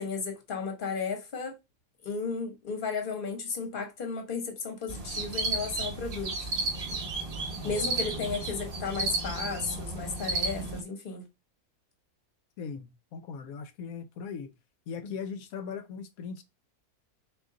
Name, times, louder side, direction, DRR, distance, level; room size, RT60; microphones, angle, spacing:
voice 1, 0.0-1.6 2.0-6.5 7.6-11.2, left 5 dB, 40° left, 1.1 m, -34 dB
sound 1, 4.9-10.8, right 3 dB, 45° right, 1.0 m, -33 dB
voice 2, 12.6-14.5 14.9-16.4, left 6 dB, 75° left, 1.0 m, -39 dB
3.7 x 2.7 x 3.8 m
omnidirectional pair, 1.6 m